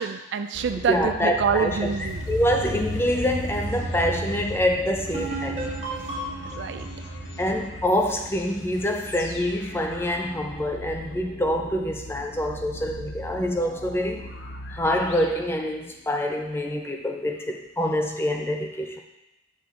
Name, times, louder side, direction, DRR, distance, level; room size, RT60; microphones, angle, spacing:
voice 1, 0.0-2.2 6.4-6.9, right 6 dB, 65° right, 9 dB, 0.3 m, -26 dB
sound 1, 0.5-16.2, left 1 dB, 75° left, 0.7 m, -41 dB
voice 2, 0.9-5.7 7.4-14.2 14.7-19.0, equal, 10° left, 3 dB, 0.4 m, -26 dB
sound 2, 1.0-12.1, equal, 80° right, 1.2 m, -36 dB
sound 3, 5.1-8.7, right 2 dB, 35° right, 1.3 m, -35 dB
6.8 x 5.9 x 2.5 m, 0.94 s
head